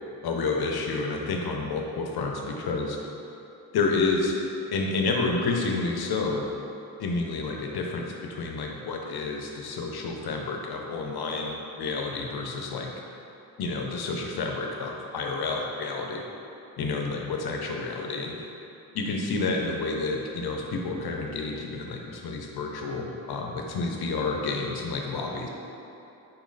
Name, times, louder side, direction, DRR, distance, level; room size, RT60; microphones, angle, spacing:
voice 1, 0.2-3.0 3.7-4.3 4.7-6.5 7.0-12.9 13.6-16.2 16.8-18.4 18.9-25.5, left 3 dB, 90° left, 1 dB, 0.6 m, -29 dB
4.5 x 3.1 x 3.8 m, 2.8 s
cardioid pair, 70°, 37 cm